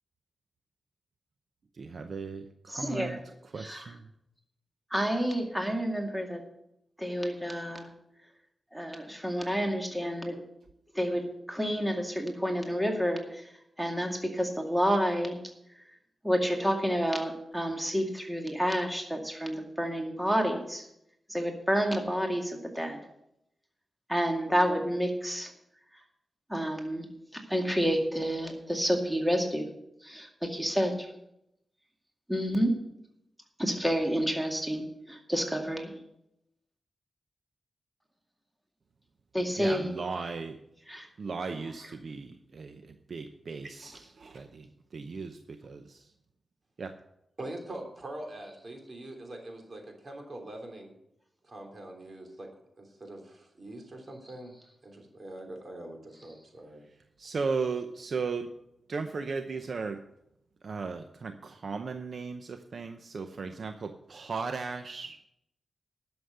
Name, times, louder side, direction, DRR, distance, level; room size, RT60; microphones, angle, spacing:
voice 1, 1.7-4.1 39.6-40.6 41.2-46.1 46.8-46.9 57.2-58.5 58.9-60.0 60.6-65.2, right 4 dB, 65° right, 7 dB, 0.7 m, -36 dB
voice 2, 2.7-3.2 3.6-3.9 4.9-6.4 7.0-7.9 8.7-10.4 10.9-11.2 11.5-13.5 13.8-15.4 16.2-20.9 21.3-23.0 24.1-25.5 26.5-27.1 27.3-29.7 30.0-31.1 32.3-32.7 33.6-35.9 39.3-39.9 40.9-41.1, equal, 5° right, 2 dB, 2.2 m, -29 dB
voice 3, 47.4-50.9 51.4-52.5 52.8-54.5 54.8-56.8, right 1 dB, 45° right, 3 dB, 3.2 m, -43 dB
11.5 x 7.1 x 7.9 m, 0.80 s
cardioid pair, 75°, 0 cm